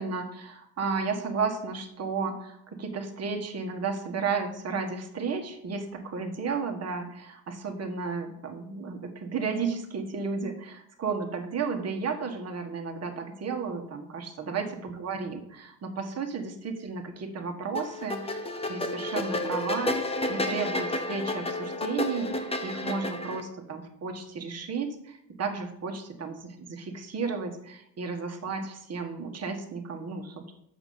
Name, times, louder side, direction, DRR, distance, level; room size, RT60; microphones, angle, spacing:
voice 1, 0.0-30.5, right 5 dB, 35° right, 5 dB, 1.6 m, -33 dB
sound 1, 17.7-23.4, left 1 dB, 15° left, 0.9 m, -31 dB
7.3 x 6.0 x 5.3 m, 0.75 s
supercardioid pair, 105°, 45 cm